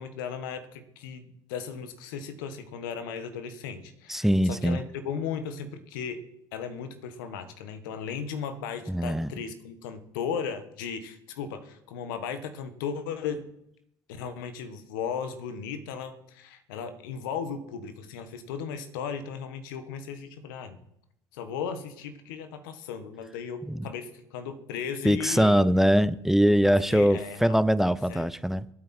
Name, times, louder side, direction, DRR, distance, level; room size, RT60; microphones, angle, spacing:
voice 1, 0.0-6.2 6.5-13.5 14.1-20.8 21.3-25.6 26.6-27.6 28.1-28.3, left 6 dB, 85° left, 9 dB, 1.5 m, -36 dB
voice 2, 4.1-4.8 8.9-9.3 23.7-23.9 25.0-28.7, equal, 5° right, 18 dB, 0.6 m, -22 dB
23.5 x 8.8 x 4.4 m, 0.76 s
hypercardioid pair, 70°, 11 cm